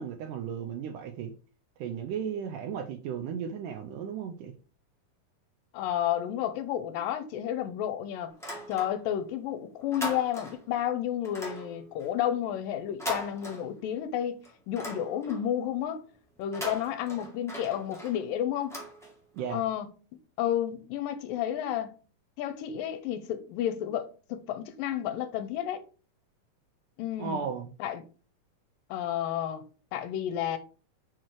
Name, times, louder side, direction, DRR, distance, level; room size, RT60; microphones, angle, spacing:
voice 1, 0.0-1.3 1.8-4.5 19.3-19.6 27.2-27.7, right 7 dB, 80° right, 2.0 m, -35 dB
voice 2, 5.7-8.3 8.7-14.4 14.7-16.0 16.4-18.8 19.5-19.9 20.4-22.0 22.4-25.8 27.0-27.4 27.8-28.0 28.9-29.6 29.9-30.6, left 10 dB, 80° left, 2.3 m, -31 dB
sound 1, 8.3-9.3 9.6-10.7 11.2-14.1 14.4-15.6 16.4-19.5, left 1 dB, ahead, 0.7 m, -40 dB
6.1 x 4.6 x 4.6 m
omnidirectional pair, 4.2 m